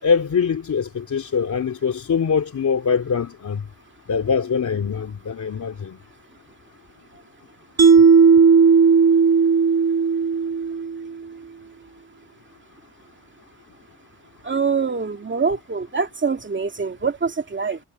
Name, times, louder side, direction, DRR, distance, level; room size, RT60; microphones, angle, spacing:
voice 1, 0.0-3.6 4.1-6.0, left 6 dB, 65° left, 2.9 m, -23 dB
Mallet percussion, 7.8-11.1, right 5 dB, 55° right, 1.2 m, -15 dB
voice 2, 14.4-17.8, right 5 dB, 35° right, 2.4 m, -24 dB
cardioid pair, 70°, 32 cm